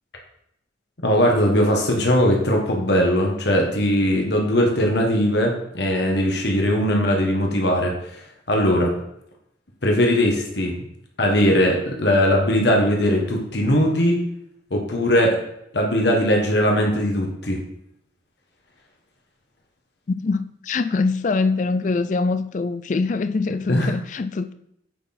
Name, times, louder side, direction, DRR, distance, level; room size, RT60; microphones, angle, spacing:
voice 1, 1.0-8.2 8.5-8.9 9.8-10.7 11.2-14.2 14.7-15.4 15.7-17.6 23.7-23.9, equal, 60° left, 1.3 m, -20 dB
voice 2, 20.1-24.5, left 3 dB, 40° left, 0.4 m, -23 dB
9.1 x 4.3 x 4.2 m
head